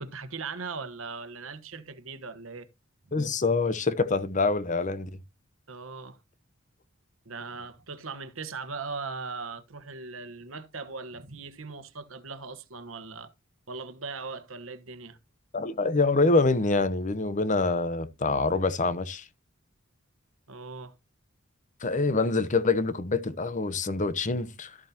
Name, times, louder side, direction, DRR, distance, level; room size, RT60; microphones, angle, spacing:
voice 1, 0.0-2.7 5.7-6.2 7.2-13.3 13.7-15.2 20.5-20.9, right 4 dB, 70° right, 1.2 m, -39 dB
voice 2, 3.1-5.1 15.5-19.2 21.8-24.7, left 3 dB, 40° left, 0.8 m, -25 dB
13.0 x 7.5 x 2.8 m
head